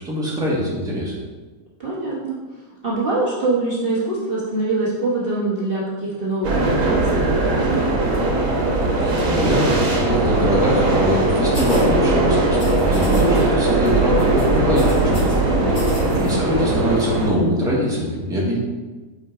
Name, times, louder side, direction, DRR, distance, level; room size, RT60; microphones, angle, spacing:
voice 1, 0.0-1.1 9.0-15.4 16.0-18.6, equal, 5° right, -6 dB, 1.3 m, -22 dB
voice 2, 1.8-2.4 2.8-7.9 15.6-16.2, right 2 dB, 45° right, -7 dB, 1.1 m, -24 dB
sound 1, 6.4-17.3, right 2 dB, 70° right, 1.5 m, -19 dB
sound 2, 11.5-11.9 12.5-13.4 13.7-13.9 14.2-15.4 15.7-16.3, left 1 dB, 70° left, 2.5 m, -38 dB
8.3 x 4.7 x 2.5 m, 1.3 s
omnidirectional pair, 1.5 m